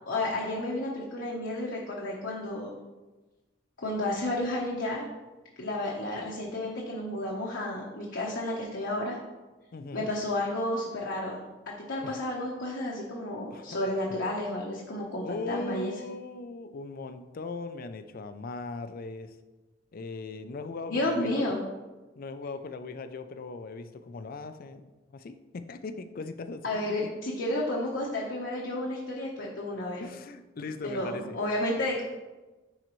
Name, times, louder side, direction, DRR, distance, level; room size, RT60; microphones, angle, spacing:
voice 1, 0.1-2.7 3.8-5.0 5.6-9.2 9.9-11.4 11.7-15.9 20.9-21.6 26.6-30.0 30.8-32.0, left 1 dB, 70° left, -4 dB, 1.0 m, -31 dB
voice 2, 9.7-10.1 12.0-12.2 13.5-13.7 15.2-19.4 19.9-21.5 22.2-24.8 25.1-27.1 30.0-31.4, left 3 dB, 50° left, 10 dB, 0.4 m, -39 dB
10.5 x 3.9 x 3.1 m, 1.2 s
head